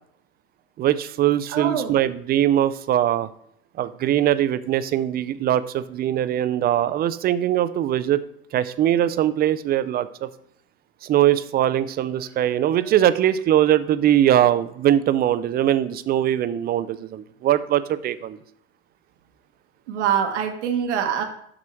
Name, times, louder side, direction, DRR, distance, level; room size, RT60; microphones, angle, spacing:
voice 1, 0.8-3.3 3.8-8.2 8.5-10.3 11.0-18.4, right 11 dB, 30° right, 14 dB, 0.4 m, -21 dB
voice 2, 1.5-2.0 19.9-21.2, right 8 dB, 85° right, 4 dB, 1.3 m, -24 dB
6.2 x 6.1 x 4.4 m, 0.70 s
supercardioid pair, 110°, 34 cm